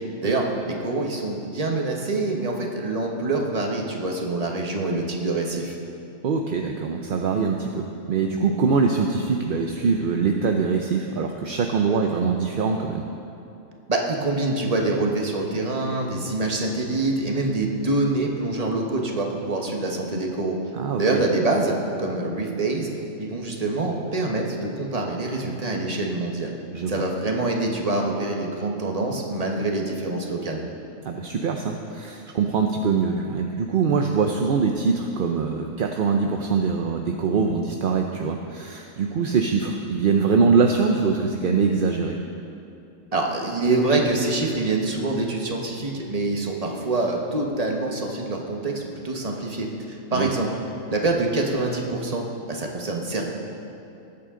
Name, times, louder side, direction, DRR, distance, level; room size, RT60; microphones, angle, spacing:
voice 1, 0.2-5.8 13.9-20.6 21.0-22.9 23.2-26.5 26.9-30.6 43.1-50.5 50.9-53.3, right 2 dB, 30° right, 0 dB, 1.3 m, -25 dB
voice 2, 6.2-13.0 20.7-21.2 26.7-26.9 31.0-42.2 50.1-50.3, right 5 dB, 50° right, 3 dB, 0.7 m, -23 dB
19.5 x 8.6 x 3.8 m, 2.7 s
omnidirectional pair, 1.3 m